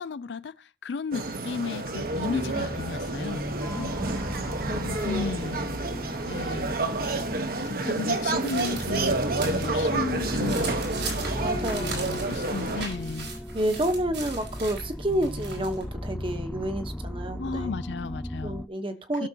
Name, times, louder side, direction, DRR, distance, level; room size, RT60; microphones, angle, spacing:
voice 1, 0.0-3.4 3.7-4.0 4.7-5.6 6.2-6.8 7.4-11.0 11.7-13.3 17.4-18.6 19.2-19.3, left 4 dB, 75° left, 0.4 m, -34 dB
sound 1, 1.1-12.9, right 2 dB, 55° right, 1.1 m, -29 dB
sound 2, 2.0-18.7, equal, 5° left, 0.4 m, -37 dB
voice 2, 3.9-5.3 8.3-8.8 11.4-12.0 13.5-17.7 18.4-19.3, right 1 dB, 30° right, 1.1 m, -30 dB
sound 3, 7.6-9.7 10.1-15.8, right 4 dB, 85° right, 5.2 m, -39 dB
17.0 x 6.7 x 2.9 m
head